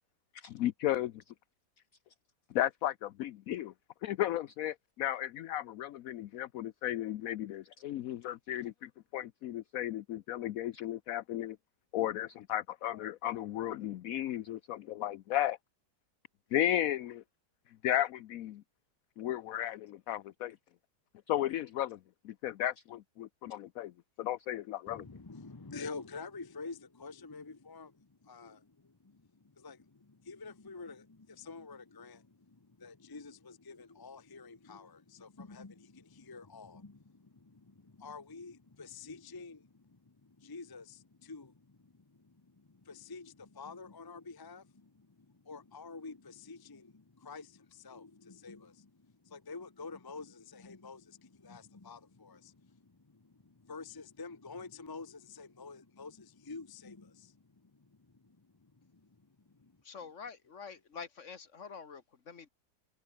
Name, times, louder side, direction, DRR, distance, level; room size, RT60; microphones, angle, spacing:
voice 1, 0.3-1.3 2.5-3.7 4.0-11.6 11.9-15.6 16.5-17.2 17.7-18.6 19.2-20.6 21.3-22.0 22.2-23.9 24.2-25.1, left 12 dB, 65° left, 0.9 m, -34 dB
voice 2, 24.9-59.8, left 4 dB, 15° left, 0.8 m, -49 dB
voice 3, 59.8-62.5, left 5 dB, 45° left, 1.8 m, -47 dB
omnidirectional pair, 1.9 m